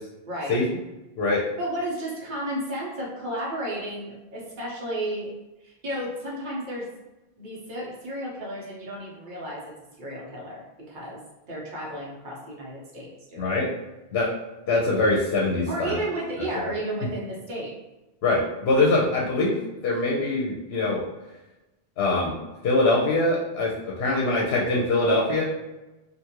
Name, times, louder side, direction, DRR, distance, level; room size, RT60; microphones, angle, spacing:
voice 1, 0.3-0.6 1.6-5.3 5.6-6.9 7.4-9.6 10.0-11.2 11.5-13.5 15.7-17.7, right 1 dB, 50° right, -5 dB, 1.0 m, -33 dB
voice 2, 13.4-13.7 14.1-14.3 14.7-16.0 18.2-21.0 22.0-22.4 22.6-25.4, left 2 dB, 75° left, -3 dB, 0.9 m, -23 dB
2.6 x 2.5 x 2.9 m, 1.0 s
omnidirectional pair, 1.1 m